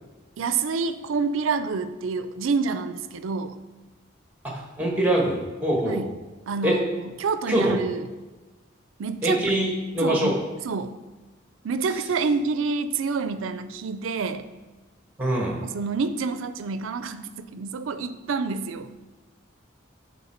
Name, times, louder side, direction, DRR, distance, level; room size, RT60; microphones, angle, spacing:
voice 1, 0.4-3.6 5.9-6.1 6.5-8.1 9.0-9.4 10.0-11.0 11.6-14.5 15.7-18.9, right 4 dB, 85° right, 11 dB, 0.4 m, -28 dB
voice 2, 4.4-6.1 6.6-6.8 7.5-7.8 9.2-10.3 15.2-15.6, right 1 dB, 10° right, -1 dB, 1.2 m, -24 dB
9.4 x 3.7 x 4.4 m, 1.2 s
head